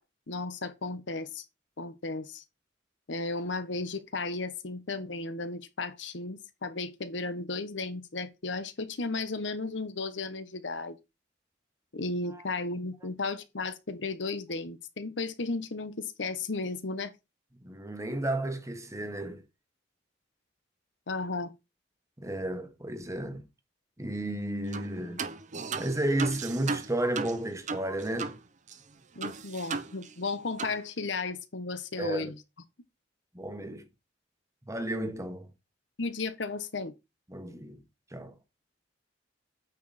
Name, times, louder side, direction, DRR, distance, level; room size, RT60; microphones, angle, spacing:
voice 1, 0.3-1.4 1.8-2.4 3.1-11.0 11.9-17.1 21.1-21.5 29.2-32.3 36.0-36.9, left 3 dB, 85° left, 1.1 m, -34 dB
voice 2, 17.6-19.4 22.2-23.4 24.0-25.2 25.8-28.4 32.0-32.3 33.3-33.8 34.7-35.5 37.3-37.8 38.1-38.4, right 1 dB, 15° right, 1.2 m, -32 dB
sound 1, 24.7-24.9 25.2-28.4 28.7-28.8 29.2-30.3 30.6-30.8, right 4 dB, 40° right, 0.8 m, -35 dB
9.0 x 4.9 x 4.2 m
head